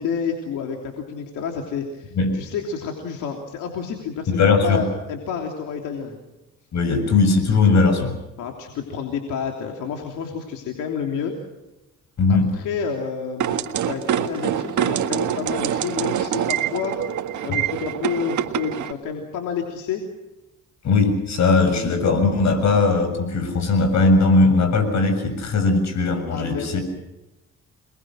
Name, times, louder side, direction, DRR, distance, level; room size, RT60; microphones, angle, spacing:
voice 1, 0.0-6.2 8.4-11.3 12.3-17.0 17.4-20.0 26.3-26.8, left 6 dB, 90° left, 2 dB, 3.3 m, -29 dB
voice 2, 4.3-4.8 6.7-8.2 12.2-12.6 17.5-17.6 20.8-26.8, left 3 dB, 65° left, 8 dB, 6.9 m, -19 dB
sound 1, 13.4-18.9, right 10 dB, 75° right, 1.7 m, -25 dB
28.5 x 21.5 x 6.3 m, 1.0 s
cardioid pair, 90°, 30 cm